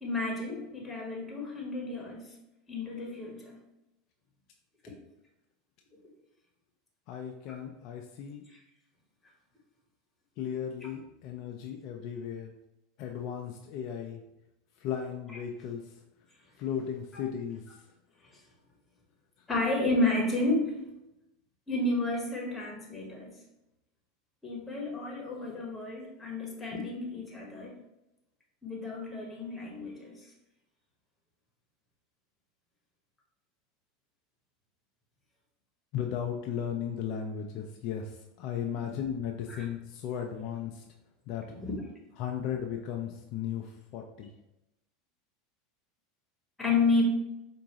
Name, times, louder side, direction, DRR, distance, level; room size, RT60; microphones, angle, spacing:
voice 1, 0.0-2.3 2.7-3.6 17.1-17.2 19.5-20.8 21.7-23.3 24.4-27.8 28.6-30.1 39.5-39.6 41.6-41.8 46.6-47.0, left 2 dB, 15° left, -1 dB, 1.3 m, -31 dB
voice 2, 7.1-8.4 10.4-12.5 13.0-14.2 14.8-15.9 16.6-17.8 35.9-40.8 41.3-41.5 42.2-44.3, left 8 dB, 55° left, 2 dB, 0.4 m, -36 dB
4.6 x 2.6 x 3.0 m, 0.90 s
hypercardioid pair, 100°, 0 cm